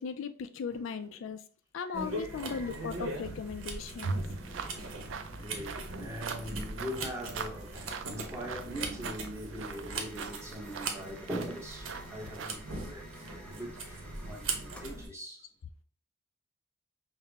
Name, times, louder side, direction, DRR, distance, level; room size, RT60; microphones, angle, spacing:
voice 1, 0.0-1.4 1.7-4.2, left 6 dB, 70° left, 0.3 m, -37 dB
voice 2, 1.8-3.1 3.7-3.8 4.3-5.0 5.4-15.5, equal, 15° right, 0.9 m, -42 dB
sound 1, 1.9-15.1, right 3 dB, 85° right, 0.9 m, -39 dB
sound 2, 4.0-12.5, right 6 dB, 65° right, 0.4 m, -44 dB
sound 3, 9.9-15.0, left 1 dB, 5° left, 0.5 m, -54 dB
5.6 x 2.1 x 3.4 m
head